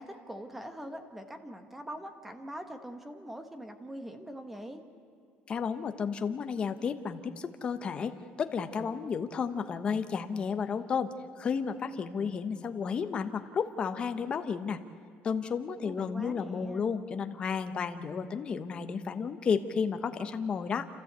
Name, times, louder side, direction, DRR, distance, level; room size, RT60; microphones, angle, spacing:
voice 1, 0.0-4.8 15.8-16.9, equal, 5° right, 7 dB, 1.4 m, -43 dB
voice 2, 5.5-14.8 15.2-20.9, left 6 dB, 30° left, 8 dB, 1.0 m, -32 dB
30.0 x 14.0 x 8.3 m, 2.6 s
cardioid pair, 180°, 4 cm